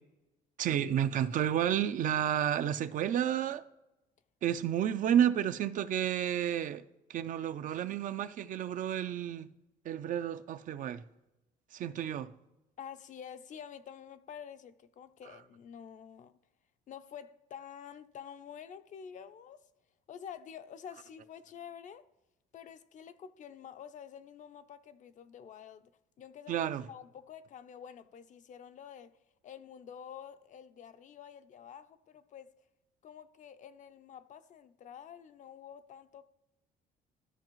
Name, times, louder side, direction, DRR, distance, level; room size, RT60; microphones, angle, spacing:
voice 1, 0.6-3.6 4.4-6.8 7.1-9.5 9.9-11.0 11.7-12.3 26.5-26.8, right 10 dB, 50° right, 0.4 m, -31 dB
voice 2, 12.8-16.3 16.9-19.6 20.1-22.0 22.5-25.9 26.2-29.2 29.4-32.5 33.0-36.3, left 8 dB, 50° left, 0.5 m, -49 dB
13.0 x 4.8 x 3.1 m
cardioid pair, 110°, 17 cm